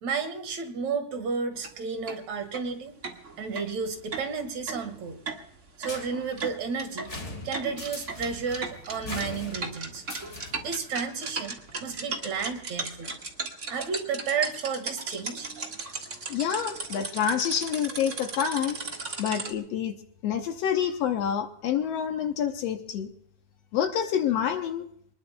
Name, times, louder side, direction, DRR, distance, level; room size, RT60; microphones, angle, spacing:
voice 1, 0.0-2.9 3.4-5.2 5.8-7.1 7.4-10.0 10.6-13.1 13.7-15.7, right 5 dB, 70° right, 8 dB, 3.0 m, -32 dB
sound 1, 1.5-1.7 2.1-2.2 2.5-2.6 3.0-19.5, right 3 dB, 30° right, 1.5 m, -37 dB
sound 2, 5.8-10.8, left 2 dB, 25° left, 2.2 m, -41 dB
voice 2, 16.3-20.0 20.2-23.1 23.7-24.9, left 8 dB, 65° left, 6 dB, 1.9 m, -28 dB
24.5 x 20.5 x 2.3 m, 0.67 s
omnidirectional pair, 3.4 m